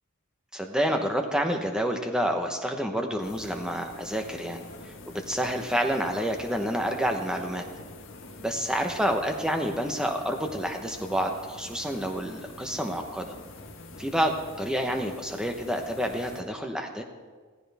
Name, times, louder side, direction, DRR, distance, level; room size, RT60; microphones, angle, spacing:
voice 1, 0.5-7.6 8.4-13.3 14.0-17.0, equal, 5° right, 3 dB, 1.0 m, -29 dB
sound 1, 3.2-16.4, left 2 dB, 60° left, 1.6 m, -46 dB
16.0 x 15.0 x 3.5 m, 1.5 s
head